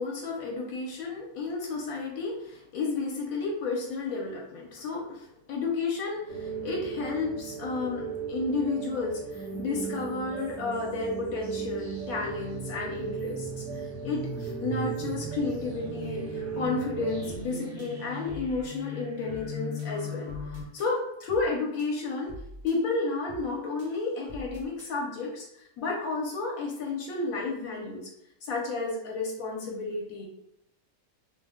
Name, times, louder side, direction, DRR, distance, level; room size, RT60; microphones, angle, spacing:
voice 1, 0.0-20.3 20.7-22.3 22.6-28.1 28.4-30.2, left 3 dB, 75° left, -2 dB, 1.0 m, -32 dB
sound 1, 6.3-17.4, right 6 dB, 65° right, 1.0 m, -37 dB
sound 2, 9.3-20.6, equal, 20° left, 0.5 m, -39 dB
sound 3, 17.3-17.5 17.8-18.8 19.3-19.5 19.8-20.9 21.3-21.5 21.8-22.8 23.3-23.5 23.8-24.9, equal, 35° right, 0.6 m, -46 dB
2.6 x 2.1 x 3.4 m, 0.79 s
omnidirectional pair, 1.5 m